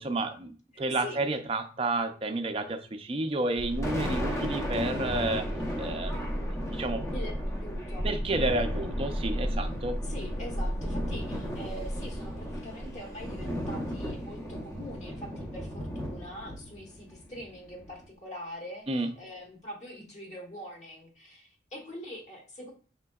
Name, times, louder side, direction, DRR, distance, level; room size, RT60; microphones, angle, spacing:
voice 1, 0.0-5.5 5.8-6.4 6.7-7.0 8.0-10.0 18.9-19.1, right 2 dB, 30° right, 7 dB, 0.4 m, -31 dB
voice 2, 0.7-1.2 7.1-8.1 10.0-22.7, equal, 40° left, 0 dB, 1.1 m, -43 dB
Thunder, 3.4-18.1, equal, 15° left, 0.6 m, -37 dB
sound 1, 3.6-15.6 15.9-16.0 16.3-16.4, equal, 60° left, 0.7 m, -35 dB
5.0 x 3.7 x 2.3 m, 0.39 s
head